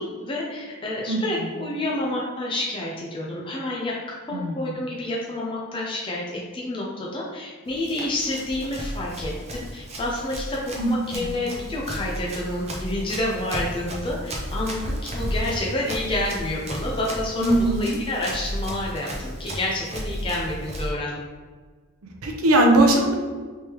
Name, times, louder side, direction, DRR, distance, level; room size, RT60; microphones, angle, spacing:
voice 1, 0.0-4.0 4.3-6.2 6.5-10.6 10.9-21.2, left 1 dB, 25° left, -4 dB, 0.4 m, -29 dB
voice 2, 4.3-4.7 10.8-11.4 17.4-18.0 22.2-23.1, right 1 dB, 75° right, 2 dB, 0.6 m, -20 dB
Run, 7.7-20.9, equal, 30° right, 0.6 m, -33 dB
3.5 x 3.1 x 2.9 m, 1.5 s
head